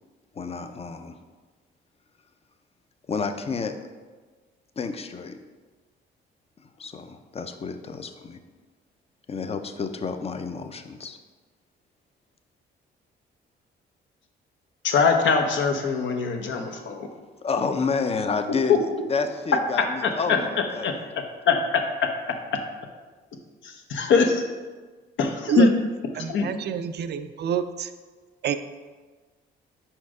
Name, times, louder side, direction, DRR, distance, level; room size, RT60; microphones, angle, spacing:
voice 1, 0.3-1.2 3.1-3.7 4.8-5.4 6.6-8.4 9.3-11.2 17.1-21.1, left 5 dB, 30° left, 8 dB, 0.5 m, -30 dB
voice 2, 14.8-17.1 18.7-18.8 20.0-20.1 20.8-20.9 21.5-21.8 23.6-24.4 25.2-25.7 26.3-26.5, left 5 dB, 70° left, 4 dB, 0.8 m, -22 dB
voice 3, 26.1-27.9 28.4-28.6, right 8 dB, 55° right, 10 dB, 0.4 m, -27 dB
5.1 x 4.5 x 4.8 m, 1.4 s
cardioid pair, 90°, 20 cm